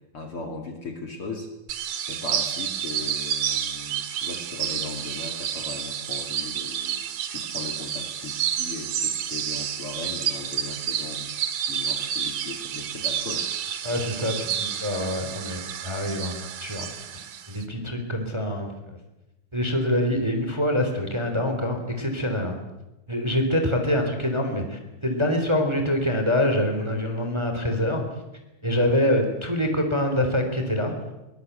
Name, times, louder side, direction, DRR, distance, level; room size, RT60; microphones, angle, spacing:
voice 1, 0.1-1.5 2.1-11.4 11.7-13.5 16.0-16.1, left 3 dB, 45° left, 4 dB, 3.0 m, -38 dB
sound 1, 1.7-17.6, right 9 dB, 65° right, 2.9 m, -30 dB
voice 2, 13.8-16.9 17.5-19.0 19.5-22.5 23.1-28.0 28.6-30.9, left 1 dB, 10° right, 4 dB, 3.2 m, -25 dB
23.0 x 21.5 x 8.2 m, 0.95 s
omnidirectional pair, 3.9 m